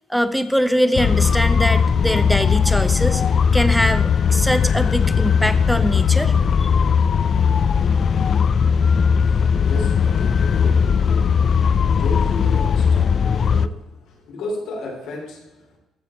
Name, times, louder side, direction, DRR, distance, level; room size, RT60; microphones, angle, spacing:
voice 1, 0.1-3.2 3.5-6.3 6.6-6.7, equal, ahead, 11 dB, 0.6 m, -22 dB
sound 1, 0.9-13.7, left 6 dB, 40° left, 0.4 m, -18 dB
voice 2, 9.0-15.8, left 2 dB, 85° left, 0 dB, 3.3 m, -34 dB
14.0 x 6.9 x 4.3 m, 1.0 s
cardioid pair, 140°, 0 cm